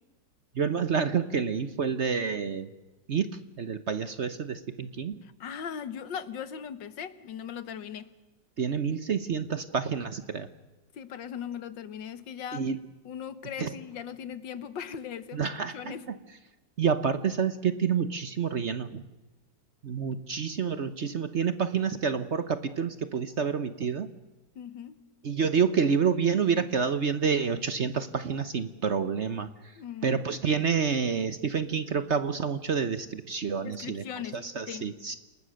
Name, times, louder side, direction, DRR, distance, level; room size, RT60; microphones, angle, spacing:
voice 1, 0.5-2.7 3.1-5.2 8.6-10.5 12.5-12.8 13.6-13.7 15.3-16.2 16.8-19.0 19.8-24.1 25.2-34.0 34.3-35.1, right 6 dB, 50° right, 12 dB, 1.0 m, -28 dB
voice 2, 5.2-8.1 10.9-12.6 13.1-16.1 24.6-25.0 29.8-30.2 33.6-34.4 34.7-34.9, left 8 dB, 80° left, 14 dB, 1.8 m, -39 dB
28.5 x 19.5 x 6.4 m, 1.1 s
omnidirectional pair, 2.0 m